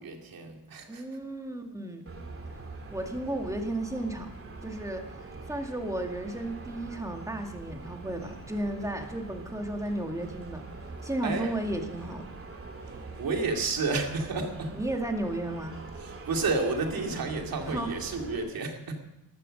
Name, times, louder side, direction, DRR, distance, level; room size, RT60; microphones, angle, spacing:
voice 1, 0.0-1.2 11.2-11.5 12.8-14.8 16.0-19.0, right 3 dB, 70° right, 3 dB, 2.6 m, -31 dB
voice 2, 0.9-2.1 2.5-2.6 2.9-4.3 4.6-10.6 11.0-12.2 14.8-15.8 17.7-17.9, right 1 dB, 10° right, 3 dB, 2.1 m, -34 dB
sound 1, 2.1-18.4, right 3 dB, 35° right, 2.4 m, -43 dB
14.5 x 12.0 x 6.4 m, 0.90 s
cardioid pair, 110°, 37 cm